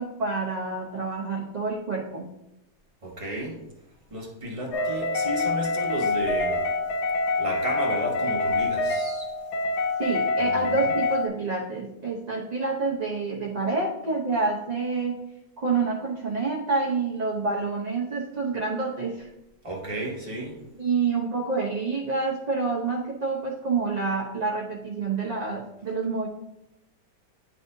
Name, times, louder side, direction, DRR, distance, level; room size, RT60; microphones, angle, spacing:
voice 1, 0.0-2.2 10.0-15.2 15.6-19.3 20.8-26.3, right 4 dB, 40° right, -3 dB, 0.6 m, -28 dB
voice 2, 3.0-3.6 4.1-6.6 7.4-9.3 10.4-11.0 19.6-20.6, right 1 dB, 20° right, -1 dB, 1.1 m, -33 dB
sound 1, 4.7-11.3, left 3 dB, 75° left, 1.2 m, -26 dB
9.8 x 4.2 x 2.7 m, 0.85 s
omnidirectional pair, 1.8 m